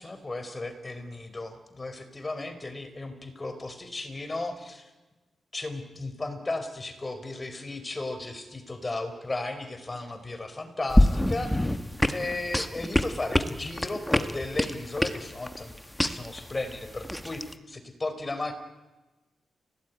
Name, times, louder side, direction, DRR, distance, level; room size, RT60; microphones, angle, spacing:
voice 1, 0.0-4.9 5.5-11.8 12.1-15.7 16.0-18.5, left 2 dB, 25° left, 8 dB, 4.4 m, -35 dB
sound 1, 10.9-17.5, left 1 dB, 5° left, 1.5 m, -26 dB
30.0 x 18.0 x 9.4 m, 1.1 s
cardioid pair, 100°, 0 cm